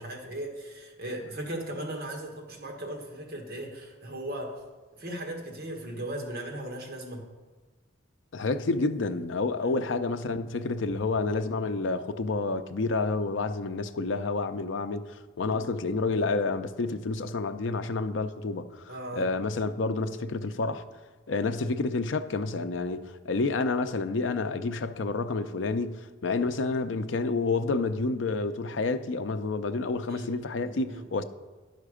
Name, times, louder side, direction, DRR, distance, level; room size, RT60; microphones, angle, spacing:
voice 1, 0.0-4.6 5.0-7.3 9.6-9.8 15.5-15.7 18.9-19.3 30.1-30.3 30.6-31.0, right 1 dB, 50° right, 1.6 m, -37 dB
voice 2, 8.3-20.8 21.3-31.2, left 3 dB, 75° left, 0.5 m, -29 dB
10.5 x 5.8 x 4.9 m
head